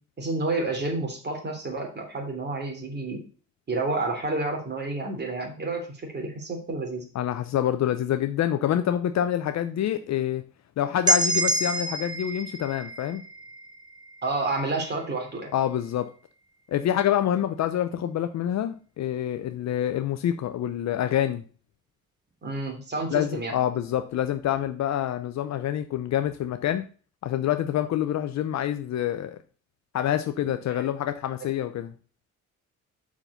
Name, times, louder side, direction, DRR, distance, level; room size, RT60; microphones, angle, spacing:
voice 1, 0.2-3.2 3.7-7.0 14.2-15.5 22.4-23.5, right 2 dB, 35° right, 1 dB, 3.1 m, -30 dB
voice 2, 7.1-10.4 10.8-13.2 15.5-16.1 16.7-21.4 23.1-26.8 27.2-29.4 29.9-31.9, left 11 dB, 65° left, 9 dB, 0.7 m, -26 dB
sound 1, 11.1-14.9, right 2 dB, 15° right, 0.8 m, -28 dB
5.8 x 4.9 x 6.6 m, 0.38 s
cardioid pair, 90°, 30 cm